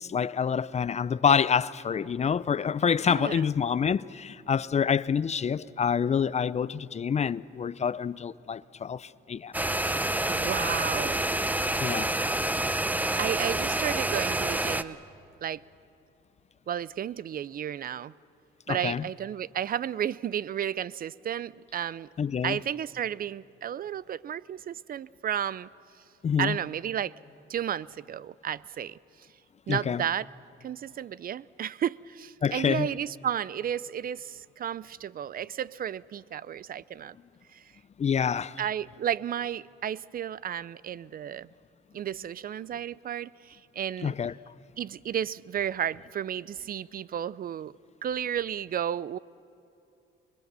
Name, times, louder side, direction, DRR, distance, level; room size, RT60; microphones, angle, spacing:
voice 1, 0.0-9.5 11.8-12.1 18.7-19.0 22.2-22.6 26.2-26.6 29.7-30.0 32.4-32.9 38.0-38.6 44.0-44.3, left 7 dB, 35° left, 0.5 m, -27 dB
voice 2, 3.1-3.4 10.3-11.2 13.2-15.0 15.4-15.6 16.7-18.1 18.7-22.1 22.4-25.7 26.4-27.1 27.5-29.0 29.7-30.3 30.6-37.1 37.5-37.6 38.6-41.5 41.9-44.1 44.8-47.7 48.0-49.2, right 9 dB, 45° right, 0.4 m, -32 dB
sound 1, 9.5-14.8, right 1 dB, 10° right, 0.7 m, -28 dB
26.0 x 22.5 x 6.8 m
cardioid pair, 90°, 20 cm